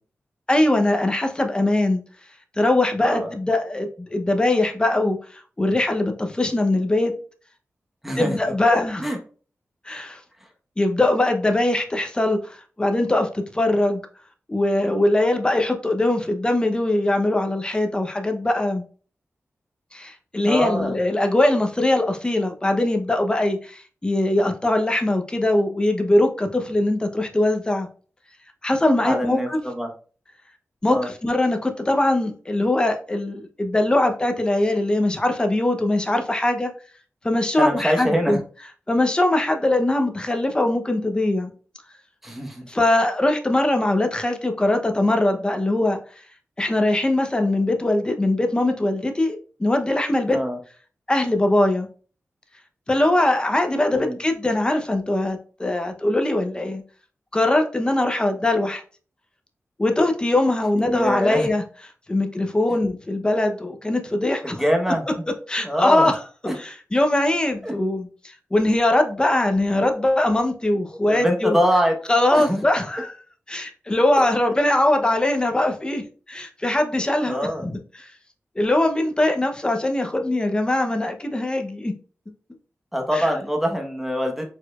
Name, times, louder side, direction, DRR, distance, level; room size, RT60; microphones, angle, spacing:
voice 1, 0.5-2.0 2.6-7.1 8.2-9.0 9.9-10.2 10.8-14.0 14.5-18.8 19.9-27.9 28.6-29.6 30.8-36.7 37.2-38.4 38.9-41.5 42.7-46.0 46.6-50.4 51.1-51.9 52.9-56.8 57.3-58.8 59.8-61.6 62.1-64.6 65.5-66.2 66.6-71.6 72.1-73.2 73.5-76.0 76.3-78.1 78.6-81.9 83.1-83.3, left 1 dB, 20° left, 0.7 m, -21 dB
voice 2, 3.0-3.3 8.0-8.4 9.0-9.2 20.5-20.9 29.0-29.9 30.9-31.1 37.6-38.4 42.2-42.7 50.3-50.6 53.9-54.2 60.8-61.5 64.4-65.0 65.6-66.1 66.5-66.6 67.6-67.7 71.1-72.0 72.3-72.6 77.3-77.6 82.9-84.5, equal, 5° right, 1.0 m, -24 dB
4.7 x 4.3 x 2.3 m
wide cardioid pair, 115°, 5 cm